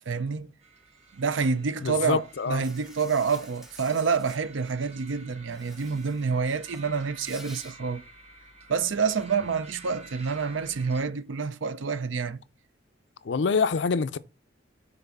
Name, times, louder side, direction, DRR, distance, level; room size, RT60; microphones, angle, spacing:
voice 1, 0.1-0.5 1.1-8.0 8.7-12.4, right 5 dB, 85° right, 0.6 m, -28 dB
sound 1, 0.6-11.1, right 3 dB, 35° right, 1.7 m, -51 dB
voice 2, 1.8-2.6 13.2-14.2, left 5 dB, 65° left, 0.5 m, -26 dB
Insect, 2.6-4.4 5.5-6.3 6.6-7.7, equal, ahead, 0.9 m, -49 dB
5.8 x 4.0 x 5.3 m
head